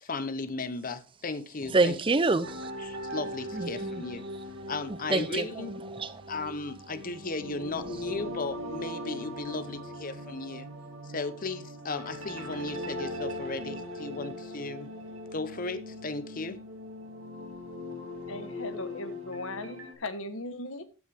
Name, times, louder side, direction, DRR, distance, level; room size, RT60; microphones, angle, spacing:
voice 1, 0.0-2.0 2.8-4.2 4.7-5.7 6.3-10.7 11.0-14.9 15.3-16.6, left 3 dB, 40° left, 0.9 m, -36 dB
voice 2, 1.7-2.7 3.5-4.0 5.1-5.5 5.9-6.2, right 3 dB, 25° right, 0.5 m, -26 dB
sound 1, 2.4-19.9, left 1 dB, 80° right, 2.1 m, -40 dB
voice 3, 18.3-20.8, left 2 dB, 80° left, 1.2 m, -38 dB
15.0 x 6.3 x 3.5 m
head